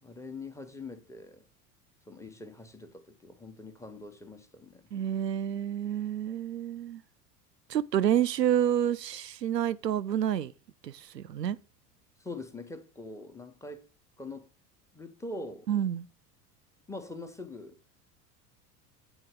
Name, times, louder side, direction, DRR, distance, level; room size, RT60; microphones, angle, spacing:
voice 1, 0.0-1.5 2.1-4.8 12.2-13.9 14.2-14.5 14.9-15.7 16.9-17.8, left 2 dB, 5° left, 1.0 m, -43 dB
voice 2, 4.9-7.0 7.7-10.5 10.8-11.6 15.7-16.1, right 10 dB, 85° right, 0.5 m, -29 dB
8.9 x 4.1 x 6.4 m
figure-of-eight pair, 75°, 48 cm